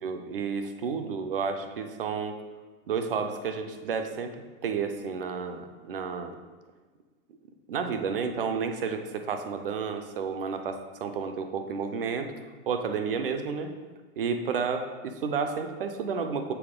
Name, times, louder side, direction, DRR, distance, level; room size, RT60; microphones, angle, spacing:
voice 1, 0.0-2.4 2.9-4.4 4.6-6.4 7.7-12.3 12.7-13.7 14.2-16.5, right 5 dB, 45° right, 7 dB, 0.5 m, -31 dB
6.9 x 4.1 x 3.7 m, 1.3 s
hypercardioid pair, 170°, 41 cm